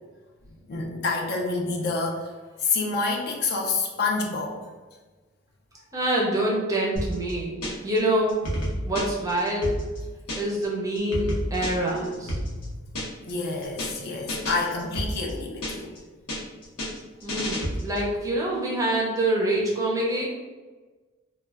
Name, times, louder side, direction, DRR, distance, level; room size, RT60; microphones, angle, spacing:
voice 1, 0.7-2.3 2.6-4.6 12.6-12.7 13.3-15.9, left 3 dB, 45° left, 0 dB, 0.4 m, -28 dB
voice 2, 5.9-7.6 7.8-8.4 8.8-9.7 10.3-12.4 17.2-20.3, right 1 dB, 15° right, -3 dB, 0.5 m, -26 dB
sound 1, 7.0-8.0 8.3-10.7 11.0-13.3 13.6-14.0 14.3-16.0 16.3-18.1, equal, 90° left, 0.8 m, -31 dB
2.2 x 2.2 x 3.3 m, 1.3 s
head